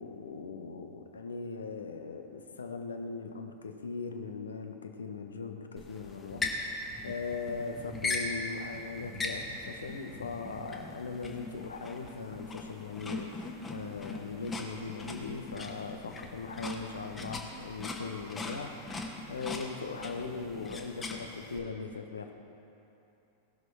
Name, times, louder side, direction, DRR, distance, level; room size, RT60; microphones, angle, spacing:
voice 1, 0.0-22.3, left 4 dB, 70° left, 5 dB, 0.9 m, -40 dB
sound 1, 5.8-21.6, left 2 dB, 15° left, 1.3 m, -40 dB
18.5 x 6.3 x 4.8 m, 2.9 s
figure-of-eight pair, 90°, 0 cm